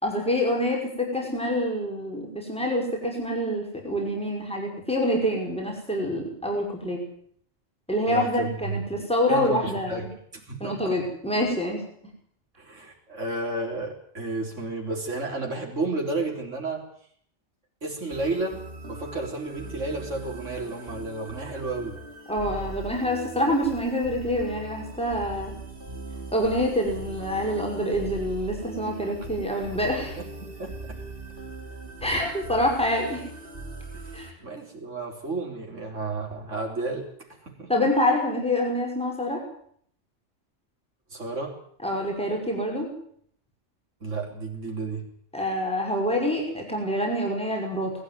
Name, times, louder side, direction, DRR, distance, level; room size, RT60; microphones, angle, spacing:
voice 1, 0.0-7.0 7.9-10.1 10.6-11.8 22.3-25.5 26.3-30.2 32.0-33.2 34.1-34.3 37.7-39.4 41.8-42.9 45.3-47.9, left 1 dB, 5° left, 0 dB, 5.8 m, -26 dB
voice 2, 8.1-8.8 9.3-11.0 12.6-16.8 17.8-22.0 30.2-31.0 33.9-37.7 41.1-41.6 44.0-45.1, right 3 dB, 80° right, 1 dB, 4.1 m, -32 dB
sound 1, 18.1-34.3, right 2 dB, 45° right, 3.4 m, -40 dB
20.0 x 14.0 x 9.5 m, 0.63 s
omnidirectional pair, 1.3 m